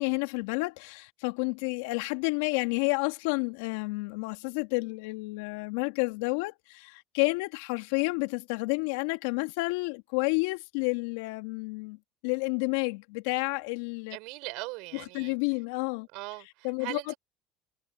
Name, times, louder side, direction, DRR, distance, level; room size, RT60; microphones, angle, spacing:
voice 1, 0.0-12.0 12.2-14.2 14.9-16.1 16.4-17.1, left 29 dB, 75° left, 2.8 m, -30 dB
voice 2, 14.1-15.4 16.1-17.2, right 27 dB, 70° right, 6.5 m, -40 dB
hypercardioid pair, 75°, 0 cm